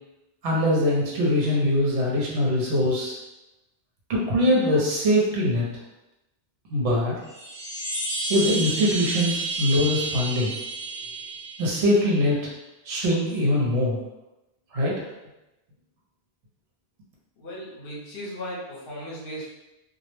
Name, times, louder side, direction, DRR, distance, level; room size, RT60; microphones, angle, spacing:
voice 1, 0.4-3.2 4.1-5.7 6.7-7.2 8.3-10.5 11.6-12.4 12.9-14.0 14.7-14.9, left 1 dB, 80° right, -4 dB, 1.0 m, -22 dB
sound 1, 7.2-12.3, right 3 dB, 5° right, 0.6 m, -31 dB
voice 2, 17.4-19.5, equal, 55° left, -5 dB, 0.9 m, -36 dB
2.3 x 2.0 x 3.0 m, 0.95 s
omnidirectional pair, 1.2 m